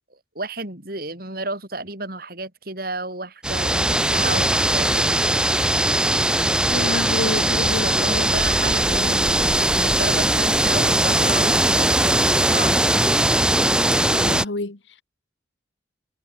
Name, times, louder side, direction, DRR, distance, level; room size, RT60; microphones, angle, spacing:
voice 1, 0.1-5.1 7.8-13.0, right 2 dB, 50° right, 6.3 m, -32 dB
sound 1, 3.4-14.4, right 1 dB, 5° right, 1.1 m, -20 dB
voice 2, 6.7-8.4 8.9-9.2 14.1-15.0, left 2 dB, 75° left, 1.5 m, -29 dB
head